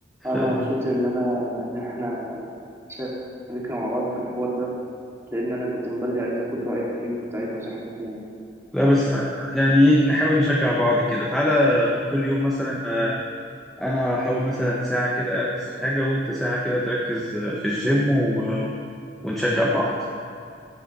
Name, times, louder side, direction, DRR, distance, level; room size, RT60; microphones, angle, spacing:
voice 1, 0.2-2.5 2.9-3.1 3.5-4.7 5.3-8.2, equal, 15° right, -5 dB, 2.2 m, -27 dB
voice 2, 8.7-13.2 13.8-18.7 19.2-19.9, left 1 dB, ahead, -5 dB, 1.0 m, -22 dB
15.5 x 8.0 x 4.2 m, 2.5 s
head